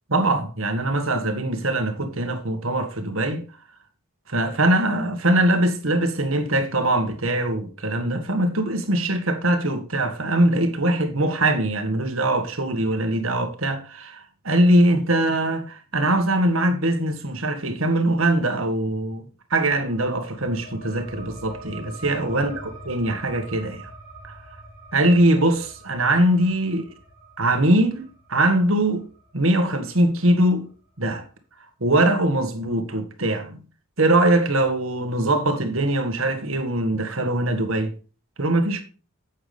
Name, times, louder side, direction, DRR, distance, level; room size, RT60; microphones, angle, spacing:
voice 1, 0.1-3.4 4.3-19.2 19.5-23.8 24.9-26.9 27.4-29.0 29.3-30.7 31.0-31.2 31.8-33.6 34.0-37.9 38.4-38.8, right 1 dB, 65° right, 1.8 m, -22 dB
sound 1, 19.8-31.0, right 1 dB, 30° left, 4.0 m, -44 dB
9.4 x 8.6 x 3.4 m
head